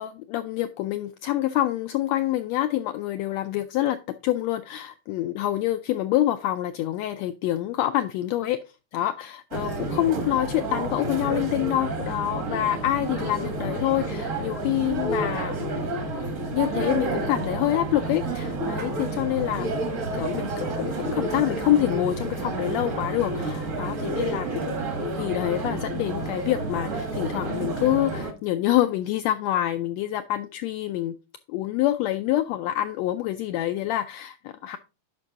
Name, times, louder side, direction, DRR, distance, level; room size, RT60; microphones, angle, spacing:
voice 1, 0.0-4.0 4.2-8.6 8.9-15.7 16.5-19.7 20.2-24.8 25.2-31.1 31.5-34.8, left 13 dB, 85° left, 10 dB, 1.5 m, -26 dB
sound 1, 9.5-28.3, right 2 dB, 45° right, 1.0 m, -30 dB
11.0 x 5.3 x 3.5 m, 0.30 s
omnidirectional pair, 3.5 m